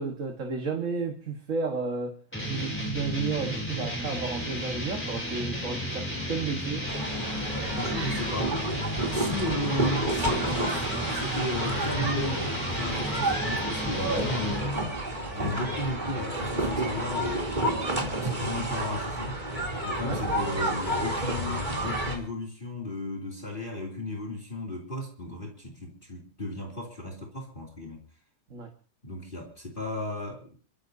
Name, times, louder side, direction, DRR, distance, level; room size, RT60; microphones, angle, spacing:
voice 1, 0.0-2.2 2.4-6.9 20.0-20.2 28.5-28.7, right 4 dB, 50° right, 1.9 m, -32 dB
sound 1, 2.3-14.9, equal, 5° left, 3.3 m, -33 dB
sound 2, 6.9-22.2, right 1 dB, 25° right, 3.2 m, -30 dB
voice 2, 7.8-8.5 9.1-14.8 15.3-17.7 18.1-19.4 19.8-28.0 29.0-30.6, left 1 dB, 30° left, 3.1 m, -35 dB
28.0 x 14.5 x 2.8 m
omnidirectional pair, 1.8 m